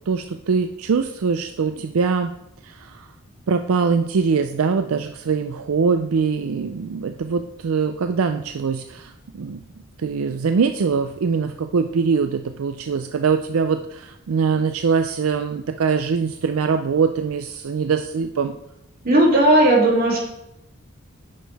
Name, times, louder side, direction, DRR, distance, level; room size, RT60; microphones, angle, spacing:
voice 1, 0.1-2.3 2.6-3.1 3.5-9.6 10.0-18.6, right 5 dB, 75° right, 7 dB, 0.4 m, -22 dB
voice 2, 19.0-20.3, right 1 dB, 45° right, -4 dB, 2.8 m, -16 dB
9.2 x 6.5 x 3.4 m, 0.83 s
head